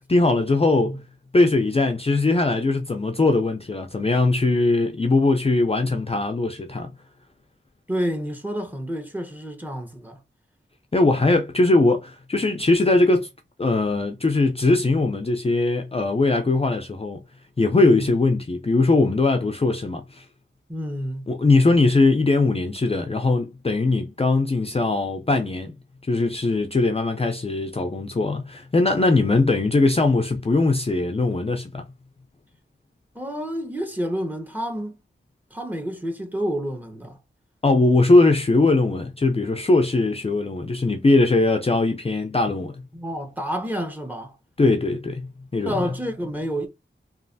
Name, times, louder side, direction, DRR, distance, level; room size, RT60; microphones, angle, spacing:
voice 1, 0.1-1.0 1.3-6.9 10.9-13.3 13.6-17.2 17.6-20.3 21.3-25.7 26.0-31.9 37.6-42.8 44.6-45.8, left 2 dB, 30° left, 0.4 m, -20 dB
voice 2, 7.9-10.2 17.8-18.1 20.7-21.3 33.1-35.0 35.5-37.2 42.9-44.4 45.6-46.7, equal, 10° right, 0.9 m, -29 dB
3.1 x 2.4 x 2.6 m
wide cardioid pair, 55°, 21 cm